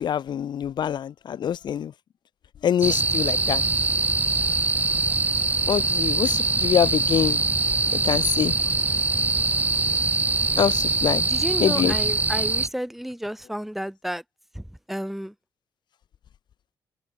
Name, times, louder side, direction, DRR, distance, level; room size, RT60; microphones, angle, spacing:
voice 1, 0.0-1.9 2.6-3.6 5.7-7.4 7.9-8.5 10.6-11.2 11.6-11.9, left 9 dB, 65° left, 2.6 m, -24 dB
sound 1, 2.8-12.7, right 3 dB, 20° right, 1.6 m, -23 dB
voice 2, 11.3-14.2 14.5-15.3, equal, 5° right, 6.0 m, -31 dB
open air
cardioid pair, 90°, 8 cm